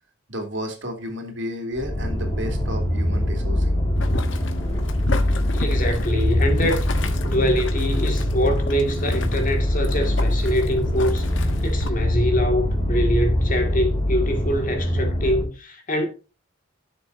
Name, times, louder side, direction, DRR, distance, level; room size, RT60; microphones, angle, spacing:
voice 1, 0.3-3.8, equal, 60° right, 2.6 m, -32 dB
sound 1, 1.8-15.4, left 1 dB, 20° left, 2.5 m, -23 dB
Boiling, 4.0-11.9, left 3 dB, 65° left, 1.2 m, -33 dB
voice 2, 5.5-6.8 7.2-16.1, equal, 40° left, 2.3 m, -24 dB
12.0 x 6.8 x 2.7 m
head